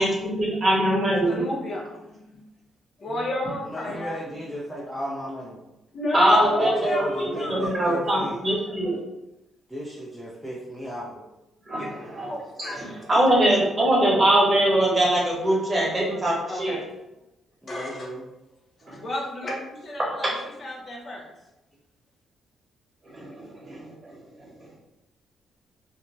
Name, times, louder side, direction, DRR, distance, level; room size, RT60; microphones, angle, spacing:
voice 1, 0.0-1.4 6.1-8.9 11.7-11.9 12.1-12.3 12.6-12.7 13.1-16.8 18.9-19.0 23.1-23.8, right 1 dB, 30° right, -3 dB, 1.1 m, -22 dB
voice 2, 1.3-2.0 3.0-4.2 5.9-7.8 8.3-8.4 8.7-9.0 11.8-11.9 12.2-12.9 16.5-16.8 17.7-18.2 19.0-20.3 20.6-21.3, left 1 dB, 40° left, -1 dB, 0.6 m, -31 dB
voice 3, 3.6-5.6 6.2-8.4 9.7-11.1 17.6-18.3, equal, 5° left, -6 dB, 0.5 m, -35 dB
2.6 x 2.1 x 3.2 m, 0.95 s
cardioid pair, 90°, 0 cm